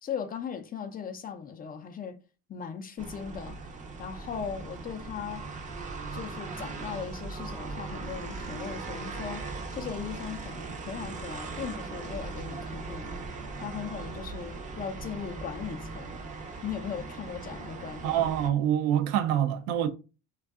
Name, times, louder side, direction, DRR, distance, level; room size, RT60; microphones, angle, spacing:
voice 1, 0.0-2.2 2.5-3.6 4.0-5.5 6.1-13.3 13.6-16.2 16.6-18.2, left 7 dB, 30° left, 0.4 m, -38 dB
sound 1, 3.0-18.5, right 3 dB, 25° right, 0.5 m, -39 dB
voice 2, 18.0-19.9, right 10 dB, 80° right, 0.5 m, -26 dB
2.5 x 2.3 x 2.3 m
supercardioid pair, 90°, 31 cm